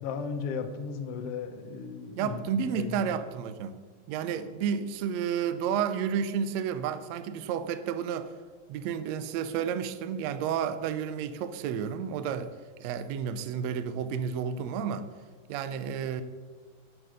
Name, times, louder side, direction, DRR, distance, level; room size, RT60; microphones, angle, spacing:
voice 1, 0.0-3.0, left 5 dB, 75° left, 6 dB, 1.4 m, -36 dB
voice 2, 2.2-3.8 4.1-8.3 8.7-12.5 12.8-15.1 15.5-16.2, right 7 dB, 85° right, 11 dB, 1.5 m, -31 dB
10.5 x 8.9 x 6.3 m, 1.5 s
omnidirectional pair, 4.1 m